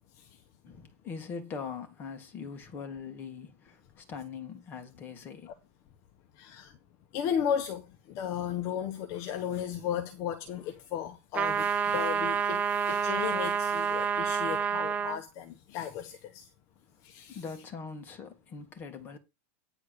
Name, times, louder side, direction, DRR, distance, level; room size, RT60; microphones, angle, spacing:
voice 1, 0.6-5.5 17.3-19.2, left 5 dB, 25° left, 2.2 m, -42 dB
voice 2, 6.4-6.7 7.1-7.8 8.1-16.4 17.0-17.4, left 9 dB, 40° left, 1.1 m, -35 dB
sound 1, 11.3-15.2, right 6 dB, 20° right, 0.6 m, -28 dB
9.9 x 4.4 x 6.4 m
supercardioid pair, 145°, 8 cm